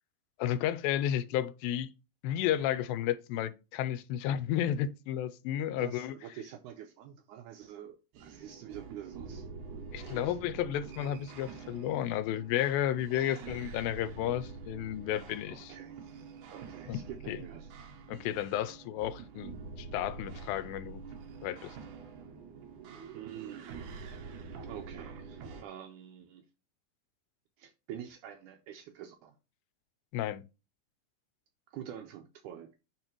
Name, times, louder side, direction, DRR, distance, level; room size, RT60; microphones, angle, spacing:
voice 1, 0.4-1.9 2.2-6.2 9.9-15.7 16.9-17.0 17.3-17.4 18.1-21.0 21.4-21.8 30.1-30.4, left 11 dB, 85° left, 2.3 m, -32 dB
voice 2, 5.8-9.5 9.7-10.4 10.6-10.7 13.1-13.5 15.5-17.7 23.1-24.1 24.7-26.5 27.6-29.4 31.7-32.7, right 10 dB, 85° right, 1.8 m, -47 dB
sound 1, 8.1-25.6, right 5 dB, 70° right, 2.3 m, -46 dB
10.5 x 3.6 x 3.0 m
omnidirectional pair, 4.1 m